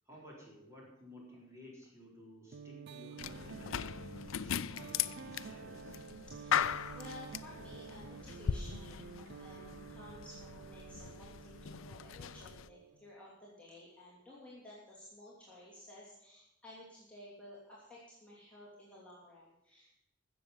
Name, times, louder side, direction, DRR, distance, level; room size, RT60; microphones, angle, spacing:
voice 1, 0.0-4.0 4.4-6.0, left 1 dB, 15° right, -4 dB, 4.1 m, -55 dB
sound 1, 2.5-13.1, right 6 dB, 55° right, 0.4 m, -51 dB
sound 2, 3.2-12.7, left 8 dB, 80° left, 0.5 m, -39 dB
voice 2, 6.3-19.9, left 1 dB, 5° left, -8 dB, 3.0 m, -54 dB
15.0 x 7.1 x 6.9 m, 0.87 s
head